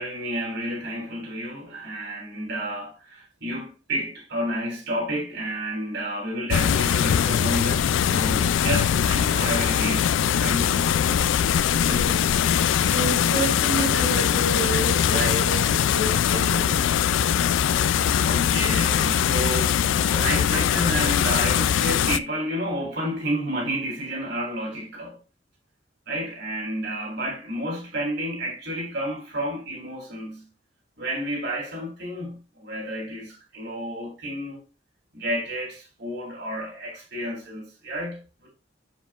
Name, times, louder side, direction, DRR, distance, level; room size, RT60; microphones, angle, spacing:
voice 1, 0.0-11.2 11.8-12.1 18.2-25.2 26.1-30.5 31.0-34.6 35.1-38.5, right 1 dB, 60° right, 3.2 m, -31 dB
sound 1, 6.5-22.2, left 9 dB, 75° left, 0.3 m, -22 dB
voice 2, 11.8-12.2 12.8-17.2, right 3 dB, 90° right, 2.4 m, -30 dB
7.4 x 7.2 x 2.4 m
head